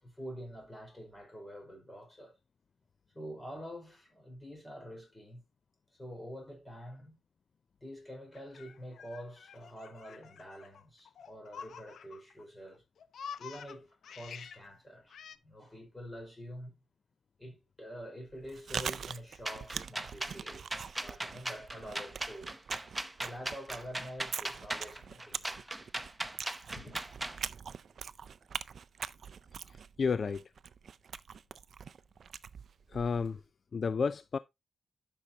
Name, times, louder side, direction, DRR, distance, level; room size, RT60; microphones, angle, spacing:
voice 1, 0.0-2.4 3.1-5.4 5.9-7.2 7.8-12.8 13.4-16.8 17.4-20.7 21.0-22.6 23.2-25.7 26.8-27.1, equal, 15° left, 5.0 m, -47 dB
Laughter, 8.3-12.4 12.7-14.6 15.1-15.4, left 7 dB, 80° left, 0.7 m, -48 dB
Chewing mastication, 18.3-33.4, right 7 dB, 60° right, 0.4 m, -43 dB
sound 1, 19.5-27.4, right 1 dB, 10° right, 0.7 m, -38 dB
voice 2, 29.7-30.5 32.9-33.4 33.7-34.4, left 5 dB, 50° left, 0.4 m, -32 dB
12.0 x 6.1 x 2.8 m
wide cardioid pair, 125°, 0 cm